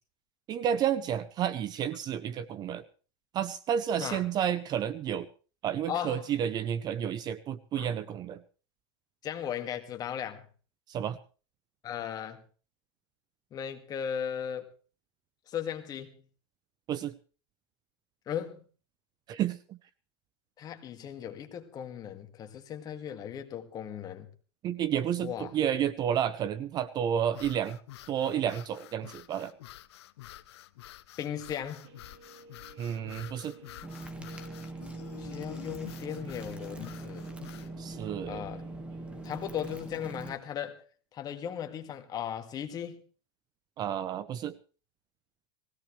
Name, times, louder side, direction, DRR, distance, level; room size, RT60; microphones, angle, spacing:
voice 1, 0.5-2.8 3.3-5.3 5.6-8.4 10.9-11.2 16.9-17.1 19.3-19.8 24.6-27.8 28.1-29.5 32.8-33.6 37.8-38.4 43.8-44.6, right 9 dB, 30° right, 0.7 m, -31 dB
voice 2, 5.9-6.3 7.8-7.9 9.2-10.5 11.8-12.4 13.5-14.7 15.5-16.1 18.3-18.6 20.6-24.3 25.2-25.5 31.2-31.9 35.2-37.3 38.3-38.6 39.2-40.8 41.1-43.0, left 9 dB, 30° left, 2.0 m, -37 dB
sound 1, 27.3-37.7, left 15 dB, 80° left, 0.9 m, -49 dB
Guitar, 31.8-39.7, right 3 dB, 70° right, 3.0 m, -53 dB
sound 2, 33.8-40.4, right 2 dB, 10° right, 1.6 m, -42 dB
19.5 x 17.0 x 3.3 m
supercardioid pair, 140°, 14 cm